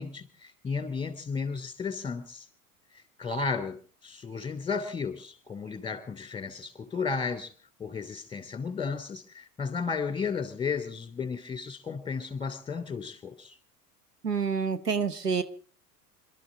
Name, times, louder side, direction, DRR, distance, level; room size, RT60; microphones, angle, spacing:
voice 1, 0.0-2.5 2.9-7.5 7.8-13.6, left 5 dB, 10° left, 2.9 m, -34 dB
voice 2, 14.2-15.4, right 5 dB, 90° right, 1.1 m, -28 dB
27.5 x 13.0 x 3.9 m
figure-of-eight pair, 75°, 46 cm